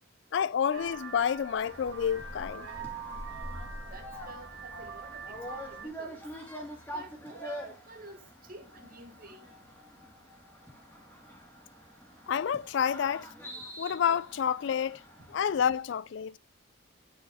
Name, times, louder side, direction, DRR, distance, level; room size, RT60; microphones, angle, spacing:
voice 1, 0.3-2.7 12.3-13.3 13.8-15.0 15.3-16.4, left 8 dB, 60° left, 0.3 m, -29 dB
Vehicle horn car horn honking, 0.7-5.9, right 3 dB, 70° right, 2.1 m, -42 dB
sound 1, 1.6-15.8, equal, 10° left, 1.7 m, -46 dB
voice 2, 3.9-6.2 6.9-9.4 15.2-15.3, right 2 dB, 45° right, 1.4 m, -50 dB
11.5 x 4.5 x 3.4 m
head